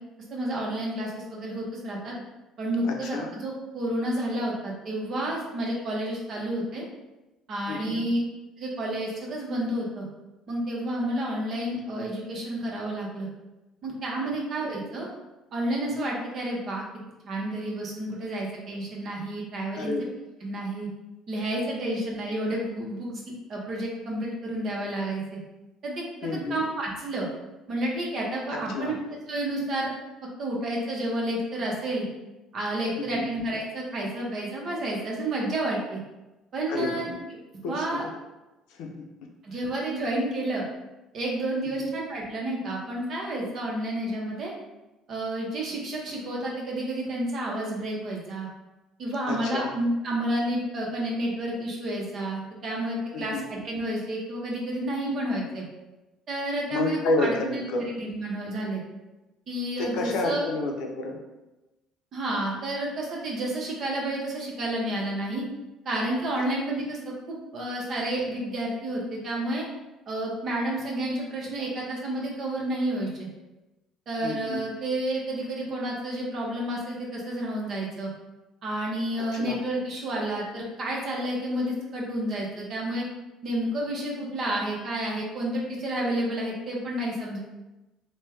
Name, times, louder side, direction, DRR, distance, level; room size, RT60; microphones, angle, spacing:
voice 1, 0.3-2.1 2.6-6.8 7.5-8.2 8.6-10.1 10.5-13.3 13.8-15.1 15.5-16.8 17.3-19.9 20.4-20.9 21.3-23.1 23.5-25.4 25.8-26.0 26.5-27.3 27.7-29.9 30.4-32.0 32.5-36.0 36.5-37.1 37.7-38.0 39.4-40.6 41.1-44.5 45.1-48.5 49.0-55.6 56.3-58.8 59.5-60.4 62.1-65.4 65.8-67.0 67.3-69.7 70.1-73.3 74.1-78.1 78.6-83.0 83.4-87.4, right 1 dB, 50° right, -2 dB, 0.9 m, -30 dB
voice 2, 2.9-3.3 7.7-8.0 19.8-20.0 26.2-26.6 28.5-28.9 33.1-33.3 36.7-37.1 37.6-38.1 38.7-39.0 41.6-41.9 49.3-49.7 53.1-53.4 56.7-57.8 59.8-61.2 71.0-71.1 74.2-74.6 79.3-79.6, left 2 dB, 75° left, 2 dB, 0.5 m, -30 dB
3.2 x 2.2 x 3.3 m, 1.0 s
supercardioid pair, 95°, 0 cm